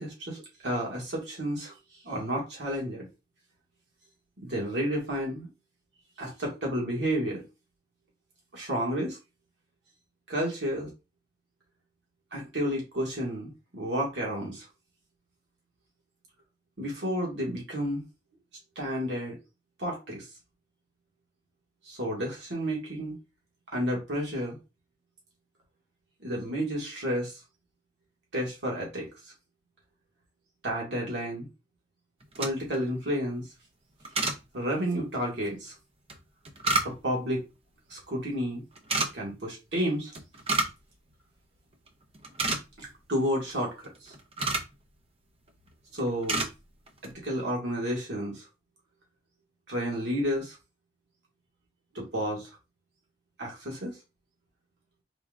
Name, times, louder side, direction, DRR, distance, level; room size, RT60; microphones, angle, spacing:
voice 1, 0.0-1.7 2.0-3.1 4.4-5.5 6.2-7.4 8.5-9.2 10.3-10.9 12.3-14.7 16.8-18.0 18.8-19.4 19.8-20.3 21.9-23.2 23.7-24.6 26.2-27.4 28.3-29.1 30.6-31.5 32.4-33.4 34.5-35.7 36.8-37.4 37.9-38.6 39.1-40.1 42.8-43.7 44.0-44.1 45.9-46.4 47.0-48.5 49.7-50.6 51.9-52.5 53.4-54.0, equal, 80° right, -2 dB, 1.8 m, -31 dB
sound 1, 32.2-32.8 34.0-34.4 36.1-37.2 38.8-39.1 40.1-40.8 41.1-41.2 41.7-41.9 42.1-42.9 43.8-44.7 45.5-45.7 46.0-46.5 46.9-47.1, right 3 dB, 35° right, 0.7 m, -29 dB
4.4 x 3.6 x 2.5 m, 0.26 s
head